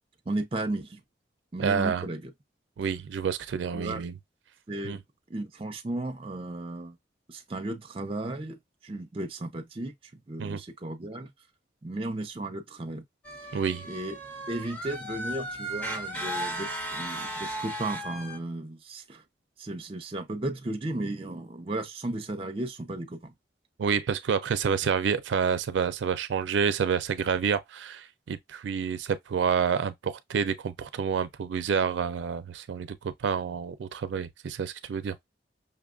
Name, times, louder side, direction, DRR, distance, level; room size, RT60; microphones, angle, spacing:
voice 1, 0.3-1.0 1.5-2.3 3.7-4.0 4.7-5.0 5.3-7.0 7.3-11.3 11.8-13.0 13.8-14.2 14.5-19.2 19.6-23.3, right 2 dB, 30° right, 0.5 m, -35 dB
voice 2, 1.6-2.0 2.8-4.1 4.8-5.0 10.4-10.6 13.5-13.8 23.8-35.2, right 6 dB, 85° right, 0.4 m, -28 dB
sound 1, 13.2-18.4, right 1 dB, 10° left, 0.8 m, -35 dB
5.5 x 2.3 x 2.4 m
head